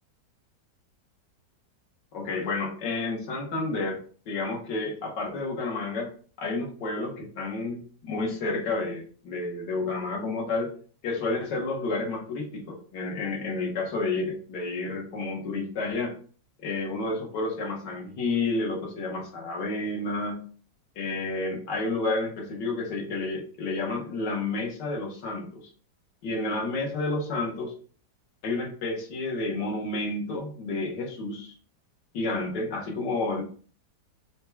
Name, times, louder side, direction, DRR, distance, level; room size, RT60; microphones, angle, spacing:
voice 1, 2.1-6.1 6.4-10.7 11.0-16.1 16.6-20.5 21.0-25.7 26.2-27.8 28.4-31.5 32.1-33.4, left 3 dB, 80° left, 0 dB, 1.7 m, -30 dB
4.6 x 2.3 x 4.4 m, 0.42 s
omnidirectional pair, 1.8 m